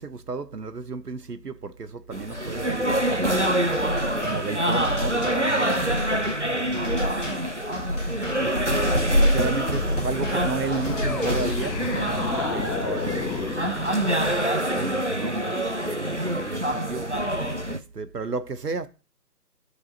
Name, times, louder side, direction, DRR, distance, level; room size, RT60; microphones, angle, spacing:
voice 1, 0.0-3.7 4.2-7.1 8.4-13.8 14.6-17.2 17.7-18.9, right 4 dB, 70° right, 1.0 m, -33 dB
sound 1, 2.1-17.8, equal, 50° right, 0.5 m, -25 dB
sound 2, 3.7-11.7, left 1 dB, 50° left, 2.0 m, -34 dB
sound 3, 10.8-14.7, left 6 dB, 80° left, 0.8 m, -33 dB
13.0 x 4.8 x 2.8 m
figure-of-eight pair, 175°, 49 cm